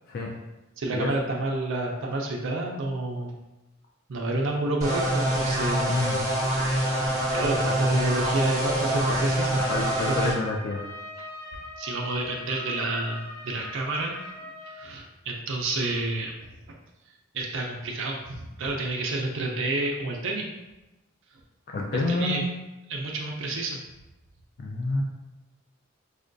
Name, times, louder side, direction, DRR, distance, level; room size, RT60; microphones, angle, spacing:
voice 1, 0.8-3.3 4.1-5.9 7.0-9.6 10.1-10.3 11.8-14.2 14.7-16.3 17.3-20.5 21.9-22.5 22.9-23.8, right 2 dB, 65° right, 0 dB, 0.5 m, -29 dB
sound 1, 4.8-10.3, right 1 dB, 20° right, 1.1 m, -26 dB
voice 2, 5.9-6.2 9.7-10.8 21.7-22.5 24.6-25.0, left 2 dB, 50° left, 0 dB, 0.4 m, -28 dB
Trumpet, 9.5-14.8, left 1 dB, 10° left, 1.1 m, -41 dB
4.9 x 2.2 x 2.5 m, 1.0 s
head